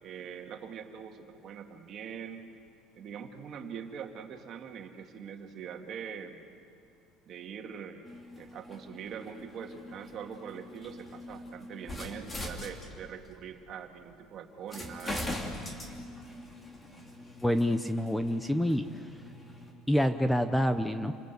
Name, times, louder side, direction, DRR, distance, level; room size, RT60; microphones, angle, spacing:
voice 1, 0.0-2.5 3.0-6.5 7.2-8.0 8.4-15.4, right 7 dB, 50° right, 4 dB, 2.2 m, -43 dB
sound 1, 8.0-13.3 14.1-14.2 14.7-19.7, left 1 dB, 20° left, 3.1 m, -42 dB
voice 2, 17.4-18.8 19.9-21.1, equal, 5° left, 10 dB, 0.8 m, -27 dB
28.0 x 19.5 x 8.2 m, 2.3 s
cardioid pair, 115°, 0 cm